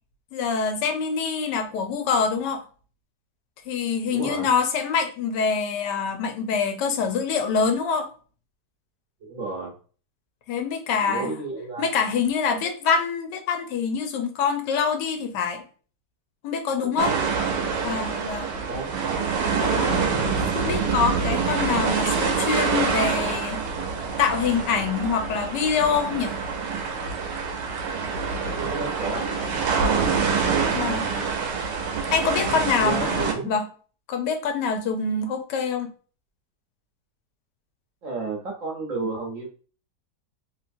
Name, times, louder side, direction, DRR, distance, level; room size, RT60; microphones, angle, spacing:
voice 1, 0.3-2.6 3.7-8.1 10.5-11.4 11.8-15.6 16.4-17.1 17.8-18.5 19.5-20.0 20.4-23.7 24.2-26.4 30.7-31.1 32.1-33.7 34.1-35.9, left 5 dB, 85° left, 6 dB, 1.3 m, -25 dB
voice 2, 4.1-4.5 9.2-9.7 11.0-11.9 16.8-17.2 18.5-18.9 28.4-29.3 30.5-31.3 32.8-33.5 38.0-39.5, right 3 dB, 60° right, -2 dB, 1.1 m, -32 dB
sound 1, 17.0-33.3, right 5 dB, 90° right, 1.3 m, -26 dB
3.1 x 2.8 x 2.6 m, 0.40 s
omnidirectional pair, 1.8 m